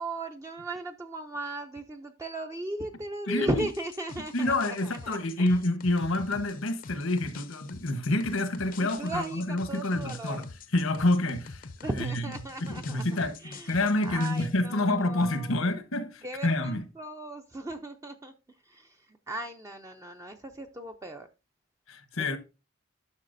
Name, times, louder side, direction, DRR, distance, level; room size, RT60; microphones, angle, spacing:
voice 1, 0.0-5.6 8.8-10.4 11.8-15.6 16.2-18.3 18.7-21.3 22.2-22.4, right 1 dB, 15° right, 0.5 m, -37 dB
voice 2, 3.3-3.6 4.3-10.4 10.7-11.7 12.0-12.2 12.6-16.8 21.9-22.4, left 2 dB, 80° left, 1.1 m, -28 dB
sound 1, 3.6-14.5, left 4 dB, 45° left, 0.5 m, -46 dB
11.5 x 5.8 x 2.6 m
head